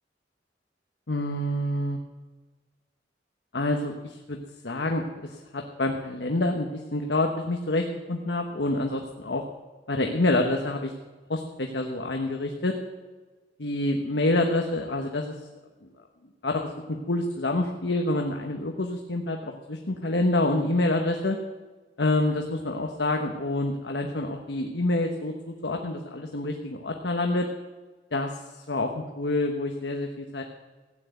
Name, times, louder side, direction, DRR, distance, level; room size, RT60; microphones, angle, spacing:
voice 1, 1.1-2.0 3.5-4.4 4.6-9.4 9.9-10.9 11.3-12.7 13.6-15.3 16.4-21.4 22.0-25.3 25.6-27.5 28.1-30.4, left 2 dB, 70° left, 3 dB, 1.2 m, -27 dB
16.0 x 9.4 x 7.9 m, 1.3 s
head